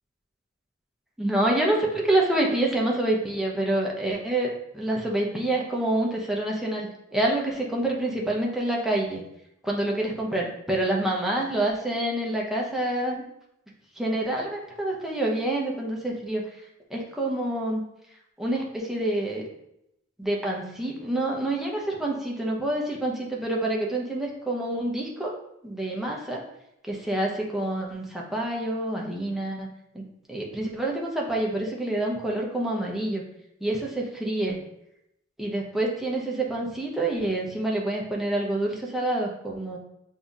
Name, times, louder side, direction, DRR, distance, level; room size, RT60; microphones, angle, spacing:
voice 1, 1.2-9.2 9.6-13.2 14.0-16.4 16.9-17.8 18.4-19.5 20.2-25.3 25.6-26.4 26.8-29.7 29.9-30.0 30.3-33.2 33.6-34.6 35.4-39.8, right 1 dB, ahead, -2 dB, 0.7 m, -27 dB
6.8 x 2.7 x 2.4 m, 0.80 s
head